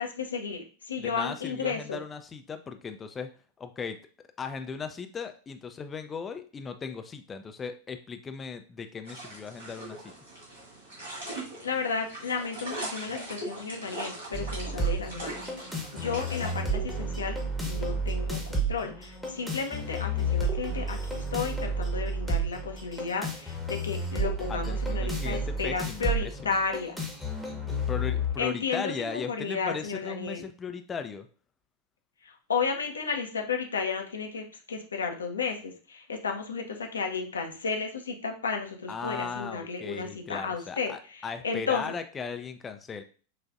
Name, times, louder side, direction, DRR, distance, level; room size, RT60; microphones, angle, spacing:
voice 1, 0.0-2.0 11.6-17.4 17.6-27.0 28.4-30.5 32.2-41.9, left 5 dB, 70° left, 3 dB, 0.6 m, -33 dB
voice 2, 1.0-3.3 3.6-4.0 4.4-10.1 24.5-26.1 26.4-26.6 27.9-31.3 38.9-43.0, left 5 dB, 20° left, 8 dB, 0.4 m, -37 dB
sound 1, 9.0-16.5, right 2 dB, 65° right, 1.8 m, -40 dB
sound 2, 14.3-28.3, right 1 dB, 5° right, 1.0 m, -31 dB
5.9 x 2.4 x 2.4 m, 0.39 s
figure-of-eight pair, 90°, 0 cm